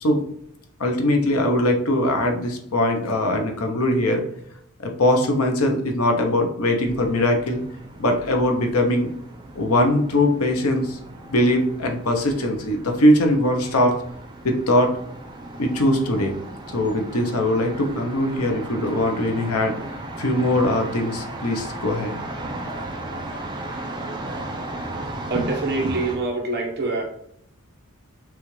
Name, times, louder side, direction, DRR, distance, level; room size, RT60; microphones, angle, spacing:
voice 1, 0.8-4.2 4.8-7.6 8.0-9.1 9.5-11.0 11.3-14.0 14.4-15.0 15.6-16.4 16.7-19.8 20.2-22.2, left 1 dB, 90° left, 3 dB, 0.8 m, -21 dB
sound 1, 6.8-26.2, right 2 dB, 20° right, 0.5 m, -36 dB
voice 2, 25.3-27.0, right 2 dB, 45° right, -2 dB, 1.1 m, -24 dB
6.1 x 2.5 x 3.2 m, 0.71 s
head